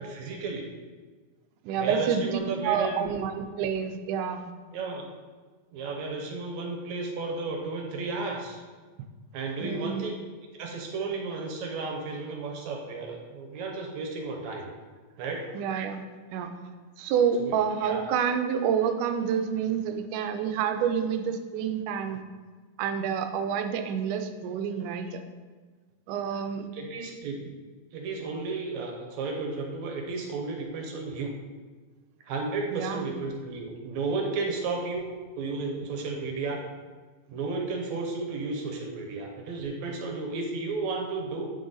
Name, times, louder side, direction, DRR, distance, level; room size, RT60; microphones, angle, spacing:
voice 1, 0.2-0.7 1.8-3.1 4.7-5.1 5.7-8.6 9.3-10.1 10.5-14.7 15.2-15.4 17.4-17.6 17.8-18.1 26.7-27.4 27.9-31.3 32.3-35.1 35.4-36.6 37.3-41.5, right 3 dB, 70° right, 1 dB, 2.0 m, -33 dB
voice 2, 1.6-4.5 9.6-10.1 15.5-16.0 16.3-16.6 17.0-22.2 22.8-25.2 26.1-26.7 30.1-30.2 32.7-33.1, right 7 dB, 90° right, 7 dB, 2.1 m, -28 dB
8.4 x 3.8 x 3.9 m, 1.4 s
omnidirectional pair, 3.5 m